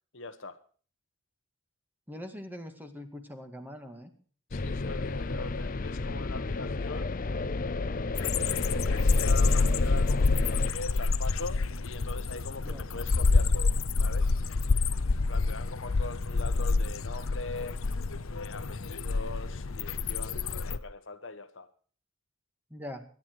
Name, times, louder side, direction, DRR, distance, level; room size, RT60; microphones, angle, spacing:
voice 1, 0.1-0.6 4.5-7.1 8.4-14.3 15.3-17.8 18.3-21.7, left 3 dB, 65° left, 1.2 m, -41 dB
voice 2, 2.1-4.1 12.6-12.9 22.7-23.0, left 1 dB, 10° right, 1.9 m, -42 dB
sound 1, 4.5-10.7, left 3 dB, 40° left, 0.7 m, -32 dB
sound 2, 8.2-20.8, left 3 dB, 90° left, 0.8 m, -27 dB
23.5 x 9.9 x 4.7 m
head